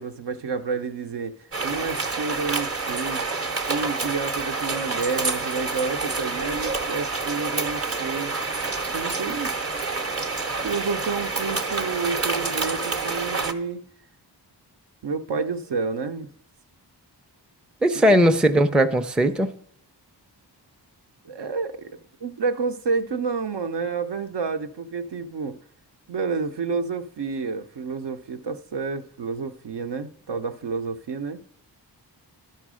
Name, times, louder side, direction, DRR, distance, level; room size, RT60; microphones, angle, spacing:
voice 1, 0.0-3.2 3.7-8.4 8.9-9.5 10.6-13.8 15.0-16.3 18.1-18.2 21.2-25.6 26.1-31.4, right 4 dB, 70° right, 0.7 m, -29 dB
sound 1, 1.5-13.5, right 3 dB, 35° right, 0.8 m, -28 dB
voice 2, 17.8-19.5, equal, ahead, 0.5 m, -18 dB
11.5 x 4.5 x 6.2 m
wide cardioid pair, 65°, 42 cm